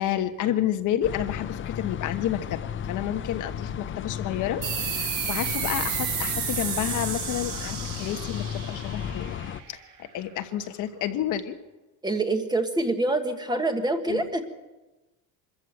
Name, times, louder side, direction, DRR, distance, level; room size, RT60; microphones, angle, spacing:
voice 1, 0.0-9.4 9.7-11.6 14.1-14.5, left 11 dB, 55° left, 8 dB, 1.2 m, -30 dB
sound 1, 1.0-9.6, left 9 dB, 30° left, 0.7 m, -34 dB
sound 2, 4.6-9.8, right 8 dB, 60° right, 4.6 m, -32 dB
voice 2, 12.0-14.5, right 2 dB, 10° right, 6 dB, 1.5 m, -26 dB
24.5 x 14.0 x 7.9 m, 1.1 s
cardioid pair, 160°, 38 cm